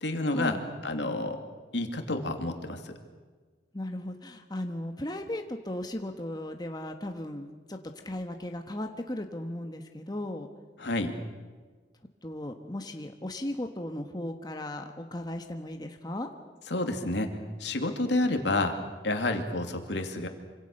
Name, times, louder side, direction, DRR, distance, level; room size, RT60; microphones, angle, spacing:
voice 1, 0.0-0.6 0.8-1.4 1.7-2.8 10.8-11.1 16.7-17.3 17.6-18.8 19.0-20.3, left 2 dB, 75° left, 5 dB, 2.7 m, -29 dB
voice 2, 3.7-7.8 8.0-10.5 12.2-16.3, left 1 dB, 25° left, 4 dB, 1.3 m, -36 dB
26.0 x 26.0 x 6.7 m, 1.4 s
head